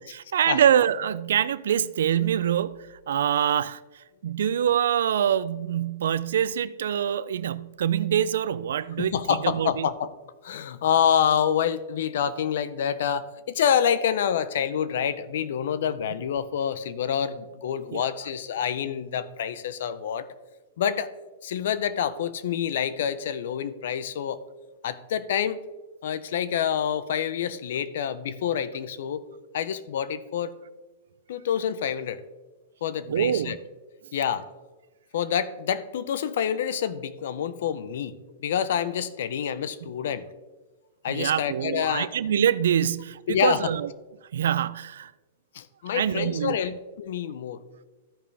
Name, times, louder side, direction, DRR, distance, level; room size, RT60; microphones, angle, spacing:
voice 1, 0.0-3.8 4.2-9.9 17.9-18.0 33.1-33.6 41.1-43.9 44.3-45.1 45.9-46.6, right 9 dB, 80° right, 0.3 m, -25 dB
voice 2, 9.0-10.1 10.4-20.3 20.8-21.1 21.4-24.4 24.8-25.6 26.0-29.2 29.5-30.5 31.3-32.2 32.8-33.6 34.1-34.5 35.1-40.3 41.0-42.1 43.3-43.6 45.5-47.6, left 8 dB, 65° left, 0.6 m, -27 dB
14.5 x 5.0 x 3.4 m
hypercardioid pair, 150°, 0 cm